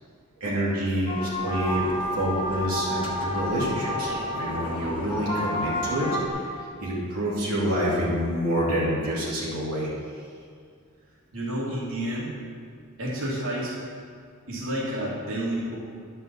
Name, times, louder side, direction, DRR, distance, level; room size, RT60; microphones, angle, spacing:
voice 1, 0.4-6.4 6.8-9.9, equal, 85° right, -7 dB, 2.7 m, -27 dB
sound 1, 1.1-6.3, equal, 25° left, 1.4 m, -30 dB
voice 2, 11.3-12.3 13.0-13.7 14.5-15.8, right 1 dB, 65° right, -7 dB, 2.6 m, -30 dB
10.5 x 5.6 x 6.8 m, 2.2 s
head